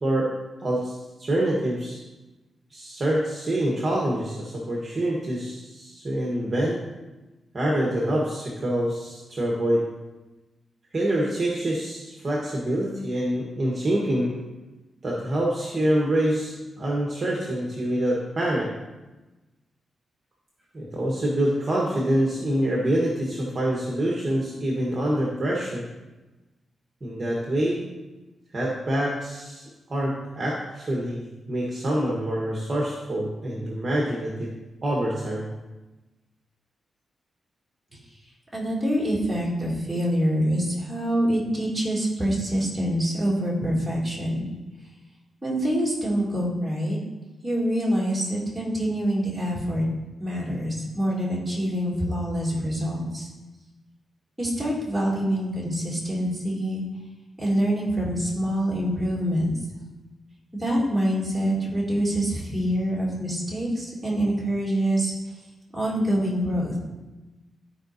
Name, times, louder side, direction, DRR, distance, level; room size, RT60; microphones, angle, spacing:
voice 1, 0.0-2.0 2.7-6.8 7.5-9.9 10.9-14.4 15.0-18.7 20.7-25.9 27.0-27.8 28.5-29.6 29.9-34.5 34.8-35.5, right 1 dB, 30° right, -3 dB, 1.2 m, -26 dB
voice 2, 38.5-44.5 45.4-47.0 47.4-49.8 50.2-53.3 54.4-56.8 57.4-59.5 60.5-65.1 65.7-66.7, equal, 5° right, -6 dB, 2.7 m, -25 dB
13.5 x 4.9 x 2.7 m, 1.1 s
wide cardioid pair, 130°, 0 cm